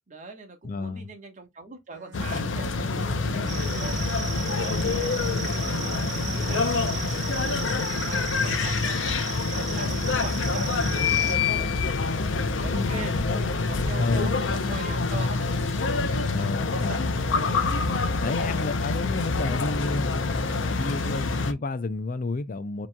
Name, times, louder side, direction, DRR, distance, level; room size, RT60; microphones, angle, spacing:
voice 1, 0.1-4.0 4.8-5.5 6.1-7.6 7.9-9.2 9.5-11.9 12.6-13.2 13.7-15.6 16.4-17.1 17.9-18.3, right 3 dB, 40° right, 1.3 m, -41 dB
voice 2, 0.6-1.1 4.6-5.0 14.0-14.4 16.3-17.0 18.2-22.9, left 3 dB, 45° left, 0.5 m, -31 dB
Bowed string instrument, 1.9-7.7, right 4 dB, 65° right, 0.9 m, -43 dB
sound 1, 2.1-21.5, left 4 dB, 85° left, 0.7 m, -26 dB
sound 2, 3.5-11.4, right 6 dB, 20° right, 1.9 m, -36 dB
7.0 x 3.0 x 2.3 m
head